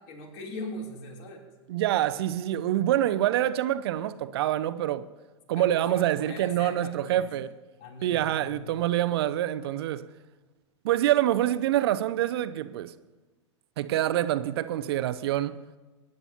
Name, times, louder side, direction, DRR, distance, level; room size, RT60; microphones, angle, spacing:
voice 1, 0.0-1.4 5.5-7.3 7.8-8.9, left 2 dB, 50° left, 3.2 m, -41 dB
voice 2, 1.7-5.1 5.5-7.5 8.0-10.1 10.8-12.9 13.8-15.6, right 12 dB, 55° right, 0.6 m, -26 dB
22.5 x 11.0 x 2.9 m
figure-of-eight pair, 95°, 16 cm